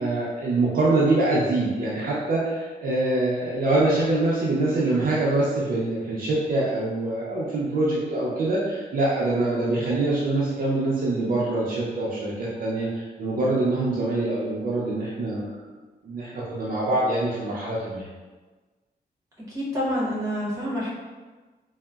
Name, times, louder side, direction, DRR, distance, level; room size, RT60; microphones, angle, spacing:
voice 1, 0.0-15.6 16.0-18.1, right 2 dB, 55° right, -6 dB, 0.5 m, -24 dB
voice 2, 19.5-20.9, equal, 20° right, -7 dB, 0.8 m, -27 dB
3.7 x 2.0 x 2.2 m, 1.3 s
wide cardioid pair, 175°, 17 cm